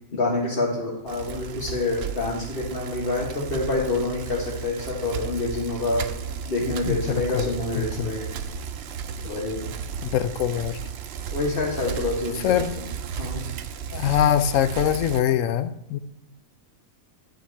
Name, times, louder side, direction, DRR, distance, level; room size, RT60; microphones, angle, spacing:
voice 1, 0.1-6.1 6.5-8.4 9.2-9.7 11.3-12.9 13.2-13.5, left 2 dB, 40° left, -4 dB, 1.7 m, -27 dB
Bicycle, 1.1-15.2, right 7 dB, 60° right, 0.7 m, -34 dB
voice 2, 10.1-10.8 12.4-12.7 13.9-16.0, left 10 dB, 70° left, 12 dB, 1.0 m, -22 dB
10.5 x 5.0 x 7.2 m, 0.83 s
omnidirectional pair, 1.4 m